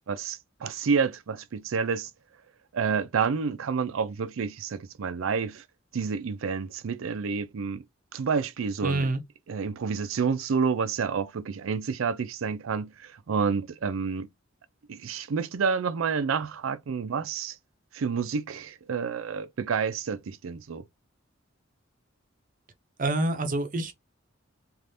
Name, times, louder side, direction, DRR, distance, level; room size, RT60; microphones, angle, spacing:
voice 1, 0.1-2.1 2.7-5.6 5.9-7.8 8.1-9.1 9.5-14.3 14.9-17.6 17.9-20.8, right 5 dB, 80° right, 0.4 m, -29 dB
voice 2, 8.8-9.2 23.0-23.9, right 2 dB, 40° right, 0.6 m, -27 dB
3.3 x 2.5 x 2.6 m
head